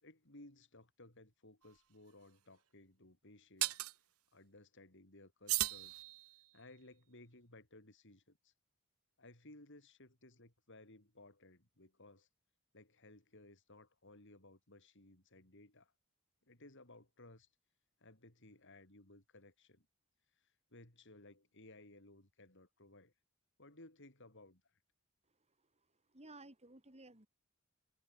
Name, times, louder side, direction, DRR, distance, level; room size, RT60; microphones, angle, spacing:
voice 1, 0.0-3.9 4.3-5.9 6.5-8.5 9.2-12.3 12.7-15.9 16.4-17.5 18.0-19.9 20.3-23.1 23.6-24.8, left 2 dB, 60° left, 5.6 m, -60 dB
sound 1, 1.6-1.8 3.6-4.0 5.5-6.6, right 17 dB, 80° right, 0.9 m, -37 dB
voice 2, 25.2-27.3, right 2 dB, 30° right, 3.8 m, -58 dB
head